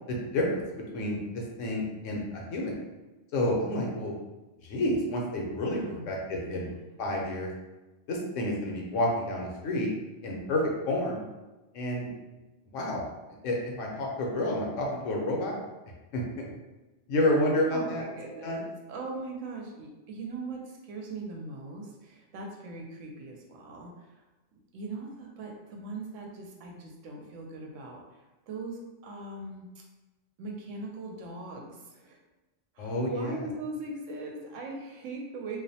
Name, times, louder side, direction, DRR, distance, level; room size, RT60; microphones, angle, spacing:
voice 1, 0.1-0.6 0.9-2.8 3.3-4.1 4.6-5.8 6.1-6.7 7.0-7.5 8.1-9.9 10.2-11.2 11.7-12.1 12.7-13.0 13.4-15.6 16.1-16.4 17.1-18.6 32.8-33.4, left 1 dB, 90° left, -1 dB, 1.0 m, -29 dB
voice 2, 5.8-6.9 17.7-24.2 24.7-28.0 28.5-29.7 30.4-32.2 32.7-35.6, right 3 dB, 85° right, 0 dB, 0.9 m, -40 dB
2.5 x 2.1 x 2.7 m, 1.1 s
omnidirectional pair, 1.3 m